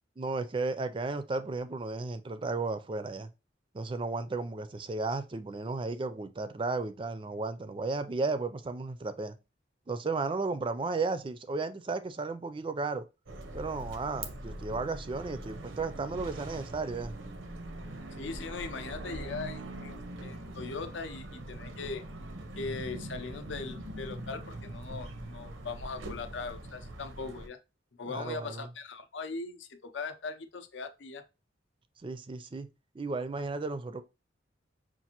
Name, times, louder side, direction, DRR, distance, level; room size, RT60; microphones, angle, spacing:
voice 1, 0.2-3.3 3.7-9.3 9.9-13.0 13.5-17.2 28.0-28.7 32.0-32.7 32.9-34.0, right 3 dB, 25° right, 0.4 m, -34 dB
sound 1, 13.3-27.5, right 1 dB, 90° right, 0.7 m, -42 dB
voice 2, 18.2-19.9 20.2-22.0 22.5-27.6 28.0-31.2, left 4 dB, 70° left, 0.6 m, -40 dB
5.8 x 2.5 x 2.9 m
head